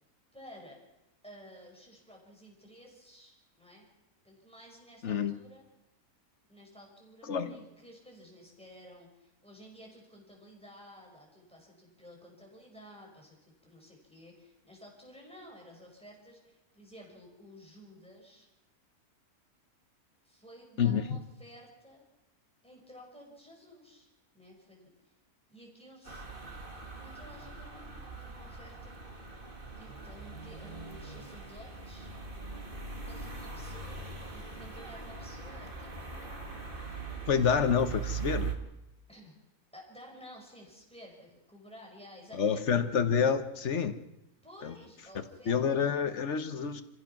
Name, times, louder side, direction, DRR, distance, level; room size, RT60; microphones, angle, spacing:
voice 1, 0.3-0.8 1.2-3.9 4.2-5.6 6.5-18.5 20.2-22.0 22.6-24.1 24.3-25.1 25.5-26.2 27.0-29.0 29.8-32.1 33.0-36.6 39.1-39.4 39.7-42.6 44.4-45.7, equal, 5° left, -1 dB, 5.9 m, -53 dB
voice 2, 5.0-5.3 7.2-7.6 20.8-21.0 37.3-38.5 42.3-44.0 44.6-44.7 45.5-46.8, left 7 dB, 55° left, 10 dB, 1.3 m, -28 dB
sound 1, 26.0-38.5, right 4 dB, 35° right, 2.2 m, -41 dB
27.0 x 16.0 x 6.0 m, 0.93 s
omnidirectional pair, 1.6 m